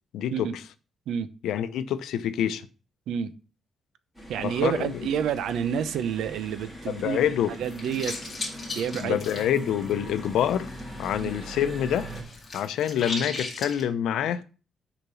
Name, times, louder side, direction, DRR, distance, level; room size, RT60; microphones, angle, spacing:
voice 1, 0.1-0.5 1.4-2.6 4.4-5.0 6.9-7.6 9.0-10.7 11.0-12.1 12.5-14.4, left 10 dB, 85° left, 0.7 m, -26 dB
sound 1, 4.1-12.2, equal, ahead, 2.6 m, -41 dB
voice 2, 4.3-7.2 7.6-8.2 8.7-9.4 11.1-11.4, right 8 dB, 80° right, 0.8 m, -29 dB
sound 2, 7.5-11.2 11.5-13.8, left 3 dB, 20° left, 2.3 m, -37 dB
6.9 x 5.2 x 7.0 m
cardioid pair, 170°, 0 cm